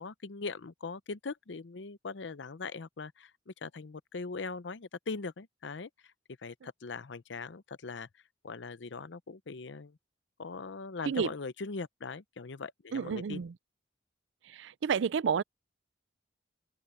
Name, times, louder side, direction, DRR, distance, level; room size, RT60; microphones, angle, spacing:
voice 1, 0.0-6.1 6.4-8.1 8.4-10.0 10.4-13.4, left 4 dB, 80° left, 0.7 m, -41 dB
voice 2, 12.9-13.5 14.4-15.4, right 6 dB, 85° right, 0.4 m, -30 dB
open air
head